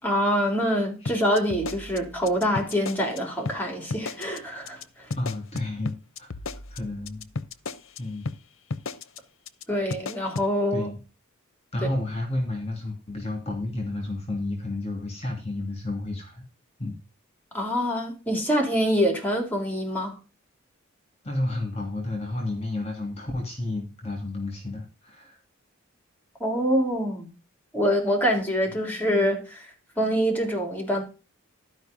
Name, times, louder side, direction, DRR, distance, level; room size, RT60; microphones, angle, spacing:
voice 1, 0.0-4.8 9.7-10.9 17.5-20.1 26.4-27.3 27.7-29.7 30.0-31.0, equal, 10° left, 3.4 m, -25 dB
sound 1, 1.1-3.2 3.5-3.6 3.9-4.4 4.7-4.8 5.1-8.0 8.3-8.4 8.7-9.2 9.5-9.6 9.9-10.5, left 3 dB, 65° left, 0.8 m, -33 dB
voice 2, 5.2-6.3 6.7-7.3 8.0-8.3 10.7-11.0 11.7-16.4 16.8-17.0 21.2-25.4, left 2 dB, 30° left, 2.9 m, -31 dB
12.5 x 5.3 x 5.2 m
head